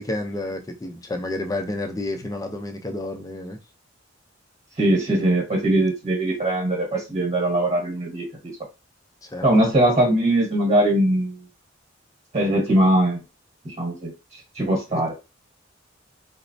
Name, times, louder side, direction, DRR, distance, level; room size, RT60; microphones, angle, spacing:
voice 1, 0.0-3.6 9.2-9.5 14.9-15.0, left 2 dB, 20° left, 0.5 m, -30 dB
voice 2, 4.8-8.5 9.4-11.4 12.3-13.2 13.6-14.1 14.6-15.1, right 1 dB, 35° right, 1.1 m, -21 dB
4.1 x 2.0 x 2.6 m
head